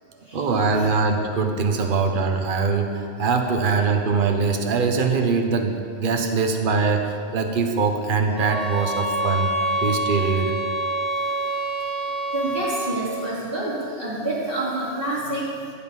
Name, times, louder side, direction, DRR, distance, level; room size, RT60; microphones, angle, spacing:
voice 1, 0.3-9.5 9.8-10.5, right 4 dB, 45° right, 4 dB, 1.1 m, -22 dB
sound 1, 8.4-13.1, right 1 dB, 85° left, 2.6 m, -27 dB
voice 2, 12.3-15.4, right 1 dB, 20° right, -10 dB, 3.7 m, -27 dB
15.0 x 8.8 x 5.5 m, 2.4 s
omnidirectional pair, 1.2 m